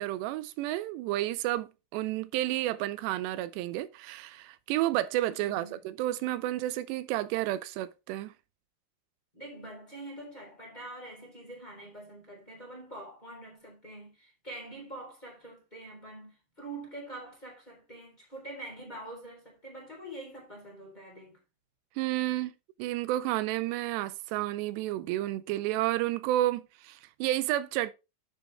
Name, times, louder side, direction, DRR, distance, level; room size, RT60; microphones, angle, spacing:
voice 1, 0.0-8.3 22.0-22.5 22.8-27.9, right 15 dB, 85° right, 2.8 m, -31 dB
voice 2, 5.3-5.8 9.3-21.4, right 1 dB, 10° left, 3.5 m, -45 dB
11.0 x 6.2 x 3.3 m
omnidirectional pair, 4.9 m